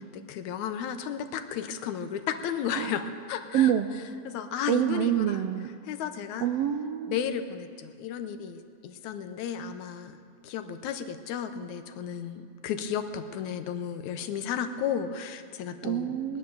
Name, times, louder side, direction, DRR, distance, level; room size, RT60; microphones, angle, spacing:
voice 1, 0.1-3.7 4.3-5.4 5.9-6.5 7.1-10.2 10.4-16.1, left 8 dB, 85° left, 8 dB, 2.2 m, -33 dB
voice 2, 3.5-3.9 4.7-5.7 6.4-7.2 15.8-16.4, right 10 dB, 80° right, 7 dB, 1.4 m, -26 dB
19.0 x 10.5 x 6.9 m, 2.2 s
omnidirectional pair, 3.3 m